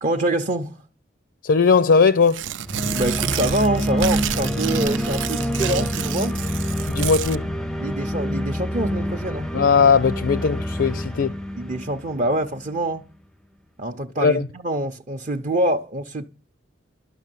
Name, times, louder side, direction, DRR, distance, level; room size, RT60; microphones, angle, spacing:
voice 1, 0.0-0.8 2.9-6.4 7.8-9.5 11.6-13.0 13.8-16.2, right 1 dB, 40° right, 0.6 m, -25 dB
voice 2, 1.4-2.4 6.9-7.5 9.5-11.3 14.2-14.5, left 5 dB, 70° left, 0.5 m, -18 dB
Tearing, 2.2-7.4, right 9 dB, 80° right, 0.5 m, -29 dB
sound 1, 2.6-12.7, equal, 5° left, 0.5 m, -27 dB
12.0 x 6.0 x 9.1 m
head